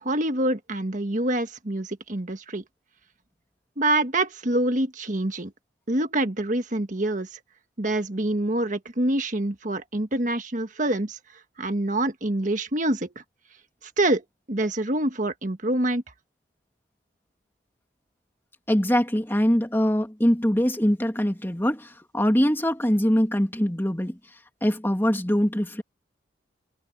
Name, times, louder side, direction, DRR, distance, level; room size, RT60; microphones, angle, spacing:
voice 1, 0.0-2.6 3.8-5.5 5.9-7.4 7.8-11.2 11.6-13.2 14.0-16.0, right 1 dB, 40° right, 1.6 m, -26 dB
voice 2, 18.7-24.2 24.6-25.8, equal, 10° left, 2.4 m, -23 dB
head